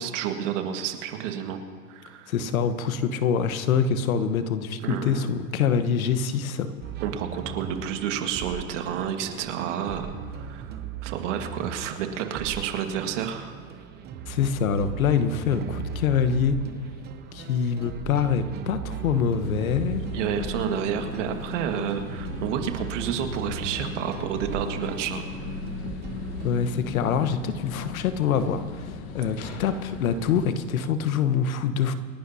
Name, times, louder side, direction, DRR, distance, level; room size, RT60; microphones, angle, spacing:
voice 1, 0.0-1.6 1.9-2.3 4.8-5.3 7.0-10.8 11.0-13.5 20.1-25.2, right 8 dB, 60° right, 5 dB, 1.8 m, -30 dB
voice 2, 2.3-6.7 14.3-16.6 17.3-20.0 26.4-31.9, left 7 dB, 80° left, 11 dB, 1.2 m, -25 dB
sound 1, 6.8-26.5, right 7 dB, 25° right, 0.8 m, -38 dB
sound 2, 19.4-30.6, left 5 dB, 50° left, 1.4 m, -37 dB
28.0 x 11.5 x 2.8 m, 2.2 s
hypercardioid pair, 135°, 41 cm